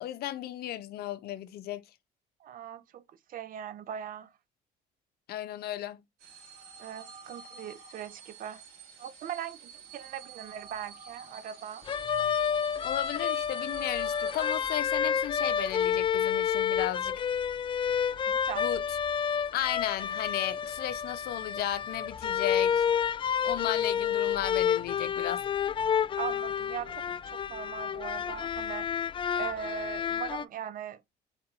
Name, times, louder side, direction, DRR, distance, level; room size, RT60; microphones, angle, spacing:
voice 1, 0.0-1.8 5.3-6.0 12.8-17.1 18.6-19.0 19.5-22.8 23.4-25.4, left 12 dB, 70° left, 0.6 m, -35 dB
voice 2, 2.4-3.0 3.3-4.3 6.8-8.6 9.0-11.8 18.3-18.6 26.1-28.9 29.4-31.0, right 9 dB, 55° right, 0.6 m, -40 dB
sound 1, 6.2-14.8, right 6 dB, 85° right, 2.1 m, -49 dB
sound 2, 11.9-30.4, left 8 dB, 30° left, 0.3 m, -30 dB
4.4 x 4.1 x 2.5 m
cardioid pair, 110°, 17 cm